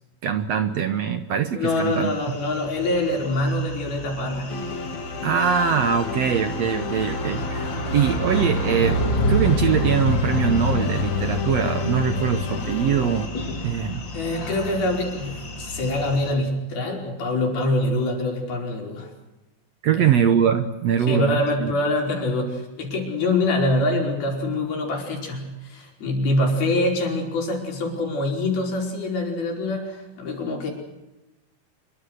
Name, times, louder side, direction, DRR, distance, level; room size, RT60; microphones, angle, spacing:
voice 1, 0.2-2.1 5.2-7.6 7.9-9.0 9.3-13.3 13.6-14.0 19.8-21.7, right 8 dB, 70° right, 9 dB, 1.6 m, -22 dB
voice 2, 1.5-4.6 14.1-19.1 19.9-20.1 21.1-30.7, left 2 dB, 80° left, 1 dB, 6.9 m, -25 dB
sound 1, 1.7-16.3, left 1 dB, 30° left, 3.8 m, -28 dB
sound 2, 4.5-13.3, left 4 dB, 55° left, 3.1 m, -33 dB
26.0 x 23.5 x 6.5 m, 1.0 s
omnidirectional pair, 4.3 m